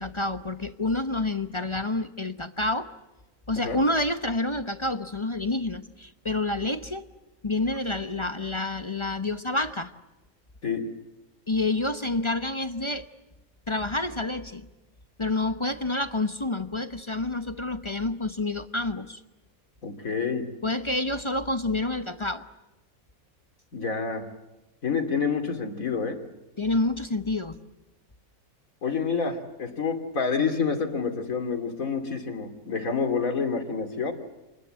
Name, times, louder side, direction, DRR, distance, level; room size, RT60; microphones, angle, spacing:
voice 1, 0.0-2.9 3.5-7.0 7.4-9.9 11.5-13.1 13.7-14.7 15.2-19.2 20.6-22.4 26.6-27.6, left 2 dB, 25° left, 10 dB, 0.8 m, -28 dB
voice 2, 19.8-20.5 23.7-24.2 24.8-26.2 28.8-34.1, left 5 dB, 65° left, 6 dB, 3.1 m, -28 dB
28.0 x 21.0 x 7.6 m, 1.1 s
omnidirectional pair, 1.6 m